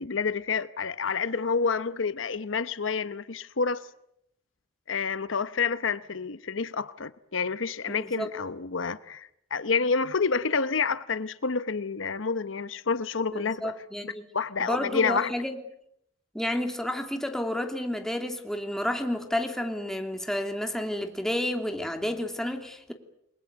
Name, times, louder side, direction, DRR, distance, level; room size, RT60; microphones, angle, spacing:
voice 1, 0.0-3.9 4.9-13.7 14.0-15.3, left 5 dB, 85° left, 0.9 m, -29 dB
voice 2, 7.9-8.3 13.3-14.3 14.6-15.6 16.3-22.9, left 1 dB, 5° left, 2.9 m, -31 dB
29.5 x 21.5 x 8.0 m
head